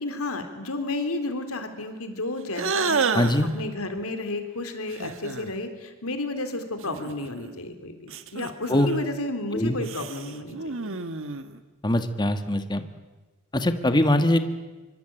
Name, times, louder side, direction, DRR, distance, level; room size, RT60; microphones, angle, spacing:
voice 1, 0.0-10.9, left 2 dB, 90° left, 7 dB, 3.6 m, -32 dB
sound 1, 2.5-3.5 4.9-5.6 6.8-7.6 8.1-9.1 9.8-11.6, right 4 dB, 65° right, 1.5 m, -30 dB
voice 2, 3.1-3.5 8.7-8.9 9.5-9.8 11.8-12.8 13.5-14.4, left 1 dB, 20° left, 9 dB, 1.6 m, -22 dB
25.0 x 24.0 x 8.9 m, 1.2 s
head